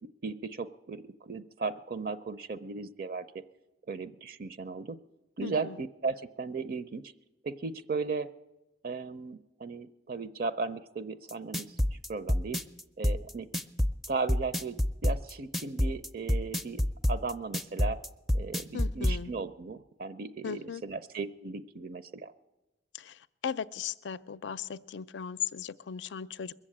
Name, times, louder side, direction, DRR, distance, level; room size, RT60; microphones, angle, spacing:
voice 1, 0.2-3.3 3.9-5.0 5.4-7.0 7.4-8.3 8.8-12.6 13.0-13.5 14.1-14.8 15.0-18.0 18.3-22.3, right 4 dB, 55° right, 13 dB, 0.5 m, -36 dB
voice 2, 5.4-5.8 18.7-19.3 20.4-20.8 22.9-26.5, left 7 dB, 85° left, 16 dB, 0.4 m, -37 dB
sound 1, 11.3-19.2, left 1 dB, ahead, 0.4 m, -27 dB
21.5 x 7.4 x 8.7 m, 1.0 s
head